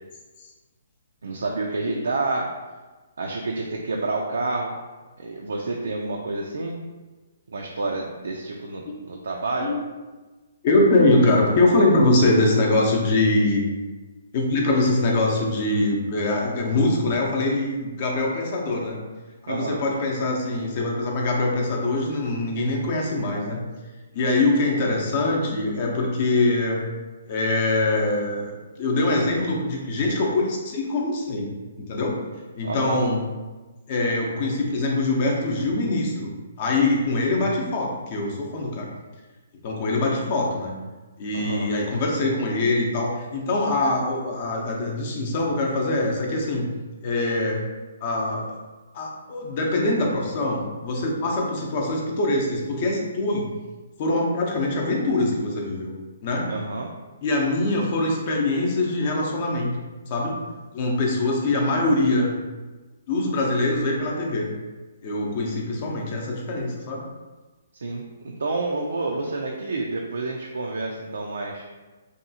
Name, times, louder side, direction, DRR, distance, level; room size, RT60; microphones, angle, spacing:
voice 1, 1.2-2.5 3.2-4.8 5.2-6.8 7.5-9.7 19.5-19.8 32.6-33.0 41.3-41.7 56.5-56.9 67.8-71.7, right 3 dB, 80° right, 0 dB, 0.3 m, -29 dB
voice 2, 10.6-13.6 14.3-19.0 19.4-23.6 24.1-26.8 27.3-31.5 31.8-32.2 32.6-33.2 33.9-36.3 36.6-38.9 39.6-40.8 41.2-46.7 47.0-47.6 48.0-48.5 48.9-53.5 54.0-55.9 56.2-56.5 57.2-59.7 60.1-60.3 60.7-62.4 63.1-64.5 65.0-67.0, left 2 dB, 45° left, -1 dB, 0.6 m, -23 dB
2.7 x 2.3 x 2.6 m, 1.3 s
hypercardioid pair, 145°, 0 cm